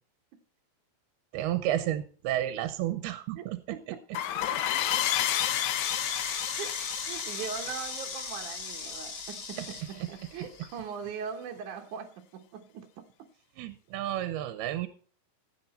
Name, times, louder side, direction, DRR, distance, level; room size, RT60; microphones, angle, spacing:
voice 1, 1.3-3.6 13.6-14.9, right 12 dB, 90° right, 11 dB, 2.7 m, -31 dB
voice 2, 3.4-4.0 5.0-5.1 6.6-13.3, right 7 dB, 65° right, 3 dB, 2.3 m, -41 dB
sound 1, 4.1-9.5, left 11 dB, 90° left, 1.6 m, -31 dB
Insect, 5.8-10.8, left 4 dB, 40° left, 1.8 m, -39 dB
15.5 x 8.8 x 4.3 m, 0.41 s
omnidirectional pair, 4.4 m